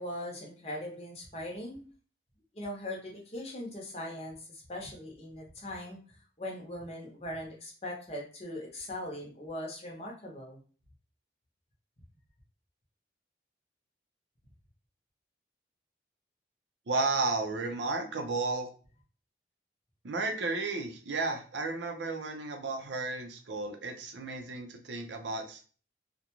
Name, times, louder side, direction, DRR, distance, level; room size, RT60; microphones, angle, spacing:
voice 1, 0.0-1.8 2.5-10.6, left 1 dB, 35° left, -1 dB, 0.7 m, -40 dB
voice 2, 16.9-18.7 20.0-25.6, right 3 dB, 80° right, 4 dB, 0.5 m, -33 dB
2.4 x 2.2 x 2.9 m, 0.39 s
head